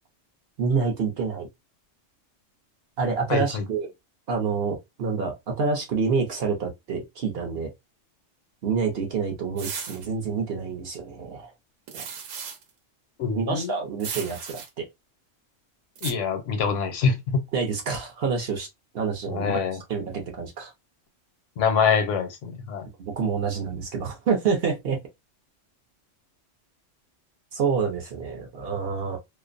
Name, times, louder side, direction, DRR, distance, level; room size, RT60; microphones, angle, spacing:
voice 1, 0.6-1.5 3.0-3.9 4.3-7.7 8.6-11.5 11.9-12.0 13.3-14.9 17.5-18.7 18.9-19.6 19.9-20.7 23.0-25.0 27.5-29.2, right 5 dB, 55° right, 0.8 m, -27 dB
voice 2, 3.3-3.6 13.2-13.7 16.0-17.4 19.3-19.8 21.6-22.9, left 6 dB, 80° left, 1.0 m, -25 dB
sound 1, 9.6-10.1 11.9-12.6 14.0-14.7 16.0-16.1, right 7 dB, 85° right, 1.0 m, -36 dB
2.5 x 2.0 x 2.4 m
omnidirectional pair, 1.3 m